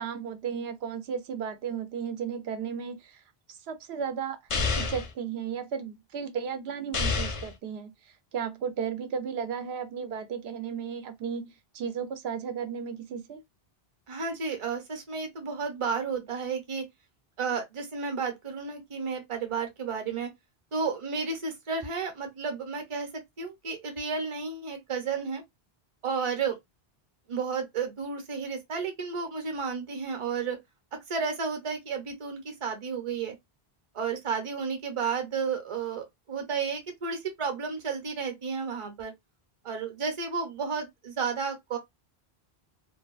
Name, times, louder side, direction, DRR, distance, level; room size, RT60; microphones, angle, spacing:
voice 1, 0.0-3.2 3.5-4.4 4.8-7.9 8.3-13.4, right 7 dB, 85° right, 0.8 m, -34 dB
sound 1, 4.5-5.1 6.9-7.5, left 4 dB, 50° left, 0.4 m, -28 dB
voice 2, 14.1-16.8 17.4-20.3 20.7-23.1 23.4-25.4 26.0-26.6 27.3-30.6 31.1-33.4 33.9-39.1 39.6-41.8, right 5 dB, 35° right, 0.7 m, -32 dB
2.6 x 2.1 x 2.3 m
omnidirectional pair, 1.0 m